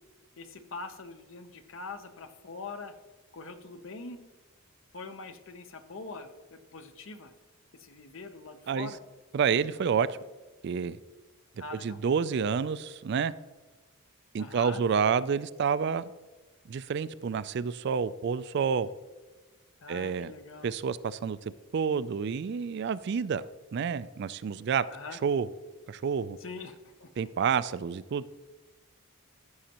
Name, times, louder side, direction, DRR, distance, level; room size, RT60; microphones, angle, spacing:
voice 1, 0.4-2.9 3.3-4.2 4.9-7.3 7.7-9.0 11.6-12.0 14.4-14.8 19.8-20.7 24.9-25.2 26.4-27.3, left 3 dB, 60° left, 0.8 m, -43 dB
voice 2, 9.3-10.2 10.6-11.0 11.8-13.3 14.3-16.1 16.7-18.9 19.9-20.3 20.6-23.5 23.7-24.8 25.2-25.5 25.9-26.4 27.2-28.2, right 6 dB, 50° right, 0.3 m, -29 dB
14.5 x 6.4 x 2.9 m
head